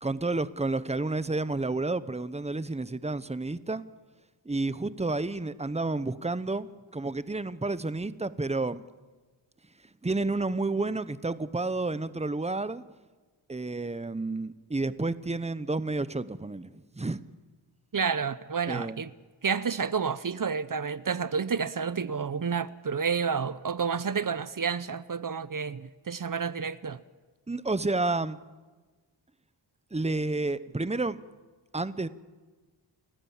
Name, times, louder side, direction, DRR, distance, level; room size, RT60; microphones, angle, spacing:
voice 1, 0.0-3.8 4.4-8.8 10.0-12.8 13.5-17.2 18.7-19.0 27.5-28.4 29.9-31.2 31.7-32.1, right 2 dB, 15° right, 1.0 m, -30 dB
voice 2, 17.9-19.1 19.4-27.0, right 6 dB, 45° right, 0.8 m, -30 dB
29.5 x 14.5 x 7.3 m
cardioid pair, 65°, 45 cm